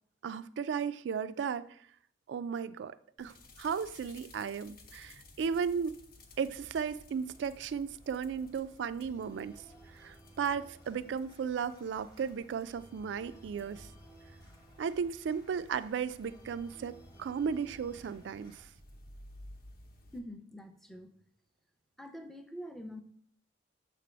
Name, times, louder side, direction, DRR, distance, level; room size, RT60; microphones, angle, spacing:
voice 1, 0.2-1.7 2.3-5.9 6.4-9.6 9.9-13.9 14.8-18.7, right 6 dB, 65° right, 0.3 m, -35 dB
sound 1, 3.2-20.2, left 1 dB, 50° left, 0.9 m, -56 dB
Organ, 5.8-18.7, right 1 dB, 20° left, 1.0 m, -59 dB
voice 2, 20.1-21.1 22.0-23.0, equal, ahead, 0.5 m, -45 dB
6.5 x 3.4 x 5.0 m
head